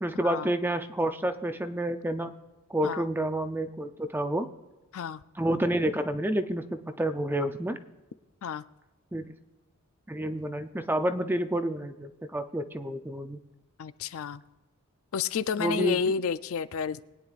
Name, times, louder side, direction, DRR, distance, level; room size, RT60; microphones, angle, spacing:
voice 1, 0.0-2.4 2.7-4.5 5.4-7.8 9.1-9.3 10.1-13.4 15.6-16.0, right 1 dB, 10° right, 8 dB, 0.4 m, -29 dB
voice 2, 13.8-14.4 15.1-17.0, left 6 dB, 65° left, 14 dB, 0.4 m, -30 dB
22.5 x 9.1 x 2.4 m, 1.1 s
head